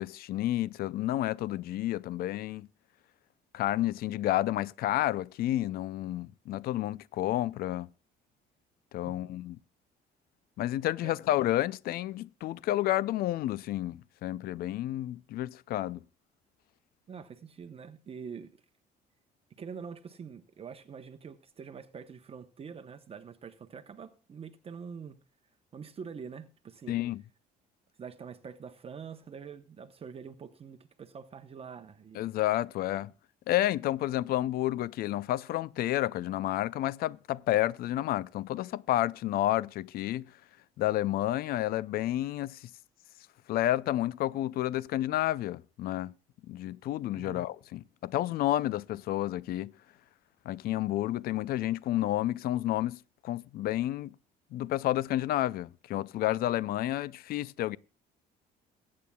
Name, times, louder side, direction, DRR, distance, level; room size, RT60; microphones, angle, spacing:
voice 1, 0.0-2.7 3.5-7.9 8.9-9.6 10.6-16.0 26.9-27.2 32.2-33.1 33.5-40.3 40.8-42.7 43.5-46.1 46.5-49.7 50.5-54.1 54.5-57.8, left 14 dB, 65° left, 0.4 m, -30 dB
voice 2, 17.1-18.5 19.6-25.2 25.7-27.0 28.0-32.3 47.2-47.4, right 6 dB, 35° right, 0.9 m, -45 dB
22.0 x 8.7 x 2.3 m
cardioid pair, 110°, 17 cm